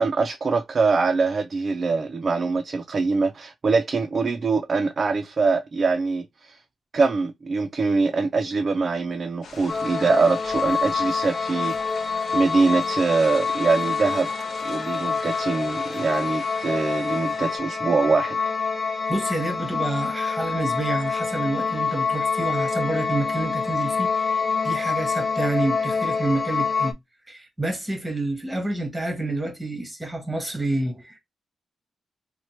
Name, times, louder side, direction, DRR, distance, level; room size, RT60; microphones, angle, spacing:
voice 1, 0.0-6.6 6.9-14.3 14.6-18.5, right 4 dB, 35° right, 0.3 m, -23 dB
sound 1, 9.4-17.6, left 4 dB, 65° left, 0.8 m, -42 dB
sound 2, 9.7-26.9, left 5 dB, 20° left, 0.5 m, -26 dB
voice 2, 19.1-27.0 27.3-31.2, right 2 dB, 5° right, 0.9 m, -28 dB
2.9 x 2.1 x 4.0 m
wide cardioid pair, 145°, 0 cm